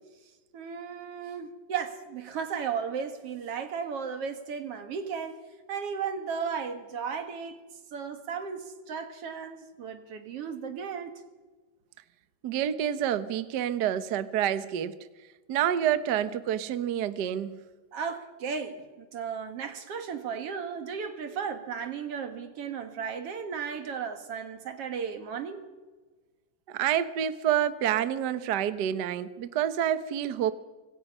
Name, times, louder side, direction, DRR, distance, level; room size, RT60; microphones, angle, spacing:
voice 1, 0.5-5.4 5.7-7.6 7.9-11.1 17.9-25.7, right 6 dB, 55° right, 7 dB, 2.3 m, -35 dB
voice 2, 12.4-15.0 15.5-17.6 26.7-30.5, right 10 dB, 90° right, 12 dB, 0.9 m, -28 dB
26.0 x 21.0 x 5.6 m, 1.3 s
omnidirectional pair, 3.5 m